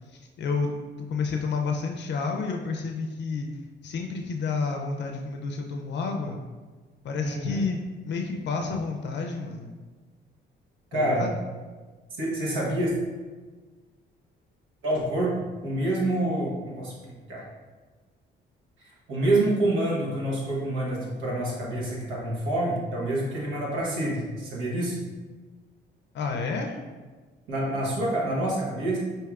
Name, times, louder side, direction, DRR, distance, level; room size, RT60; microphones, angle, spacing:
voice 1, 0.1-0.7 1.1-3.5 3.8-6.4 7.0-7.8 8.0-9.7 10.9-11.4 26.1-26.8, left 4 dB, 65° left, 3 dB, 0.5 m, -30 dB
voice 2, 7.2-7.6 10.9-11.3 12.1-12.9 14.8-15.3 15.6-16.9 17.3-17.4 18.8-25.0 27.5-29.0, right 1 dB, 85° right, -4 dB, 1.2 m, -27 dB
5.7 x 2.7 x 2.4 m, 1.3 s
cardioid pair, 90°, 20 cm